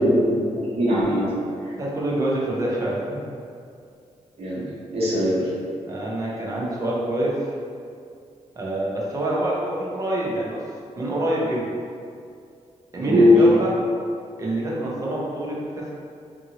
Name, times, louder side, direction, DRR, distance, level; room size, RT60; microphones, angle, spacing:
voice 1, 0.0-1.4 1.6-1.7 4.4-4.6 4.9-5.5 13.0-13.4, left 1 dB, 55° right, -9 dB, 1.1 m, -20 dB
voice 2, 1.8-3.4 5.9-7.3 8.6-10.6 11.0-11.7 12.9-13.7 14.4-15.9, right 1 dB, 25° right, -5 dB, 0.6 m, -26 dB
2.7 x 2.6 x 2.7 m, 2.4 s
wide cardioid pair, 125°, 12 cm